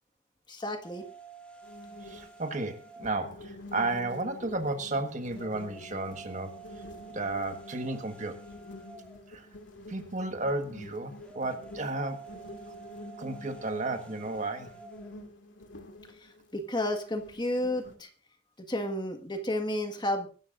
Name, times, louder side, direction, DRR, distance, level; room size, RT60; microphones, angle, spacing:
voice 1, 0.5-1.0 16.2-18.1 18.6-20.3, left 1 dB, 25° left, 1.7 m, -32 dB
sound 1, 0.8-15.3, right 4 dB, 5° left, 3.1 m, -51 dB
sound 2, 1.6-18.0, left 2 dB, 80° left, 2.3 m, -48 dB
voice 2, 2.0-6.5 7.1-8.4 9.3-9.5 9.9-12.2 13.2-14.7, right 2 dB, 40° right, 1.5 m, -33 dB
24.0 x 12.5 x 2.6 m
head